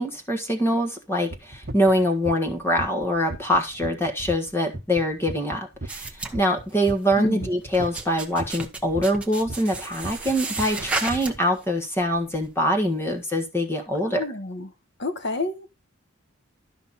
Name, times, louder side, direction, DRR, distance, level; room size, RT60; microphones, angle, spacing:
voice 1, 0.0-14.2, equal, 10° left, 1.5 m, -24 dB
sound 1, 1.3-8.0 8.3-11.4, right 2 dB, 50° right, 1.2 m, -35 dB
sound 2, 5.9-7.1 7.5-11.6 12.0-12.5, right 3 dB, 5° right, 1.1 m, -33 dB
voice 2, 7.2-7.5 14.1-14.7 15.0-15.7, left 2 dB, 55° left, 1.3 m, -30 dB
12.5 x 5.6 x 4.1 m
head